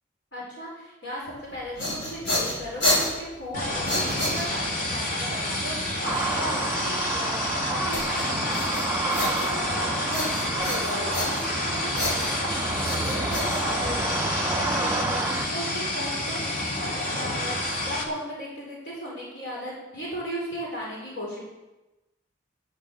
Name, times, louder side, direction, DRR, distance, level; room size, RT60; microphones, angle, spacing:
voice 1, 0.3-21.4, equal, 65° left, -4 dB, 4.6 m, -36 dB
sound 1, 1.5-4.9 7.9-9.8 10.1-11.6 11.9-14.2, left 1 dB, 85° left, 5.8 m, -30 dB
sound 2, 3.5-18.0, left 1 dB, 45° left, 2.4 m, -29 dB
sound 3, 6.0-15.5, right 3 dB, 15° right, 0.4 m, -31 dB
11.5 x 10.0 x 7.2 m, 1.1 s
head